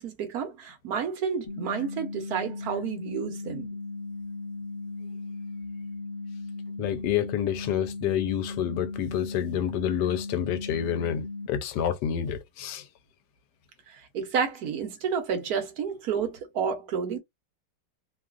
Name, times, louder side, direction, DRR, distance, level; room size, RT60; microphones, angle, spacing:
voice 1, 0.0-3.7 13.9-17.2, right 6 dB, 65° right, 1.2 m, -30 dB
sound 1, 1.5-11.5, left 3 dB, 35° left, 1.0 m, -37 dB
voice 2, 6.8-12.9, left 10 dB, 75° left, 1.1 m, -28 dB
3.0 x 2.4 x 2.4 m
omnidirectional pair, 1.9 m